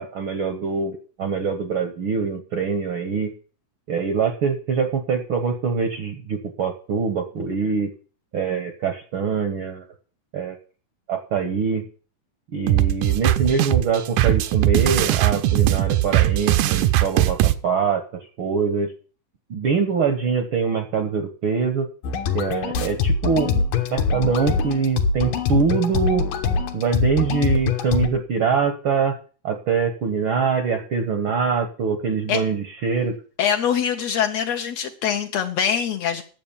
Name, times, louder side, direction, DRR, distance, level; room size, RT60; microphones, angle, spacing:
voice 1, 0.0-3.3 3.9-7.9 8.3-9.8 10.3-10.6 11.1-11.8 12.5-18.9 19.5-21.9 22.3-23.6 23.9-26.2 26.7-29.1 29.4-33.2, right 5 dB, 60° right, 6 dB, 1.4 m, -24 dB
sound 1, 12.7-17.5, right 14 dB, 80° right, 2.2 m, -19 dB
sound 2, 22.0-28.1, left 4 dB, 85° left, 2.8 m, -23 dB
voice 2, 33.4-36.2, left 8 dB, 65° left, 6 dB, 1.8 m, -23 dB
10.0 x 7.5 x 7.1 m, 0.39 s
omnidirectional pair, 3.7 m